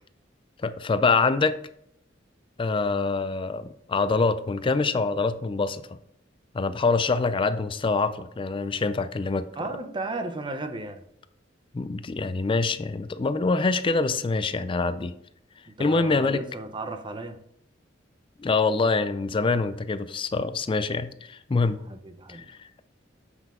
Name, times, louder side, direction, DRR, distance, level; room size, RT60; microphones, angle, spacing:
voice 1, 0.6-1.6 2.6-5.9 6.5-9.5 11.7-15.1 15.8-16.4 18.4-21.8 22.3-22.7, left 4 dB, 25° left, 0.4 m, -25 dB
voice 2, 9.6-11.0 15.8-17.4 21.9-22.5, right 2 dB, 25° right, 0.6 m, -34 dB
7.9 x 5.5 x 3.6 m
head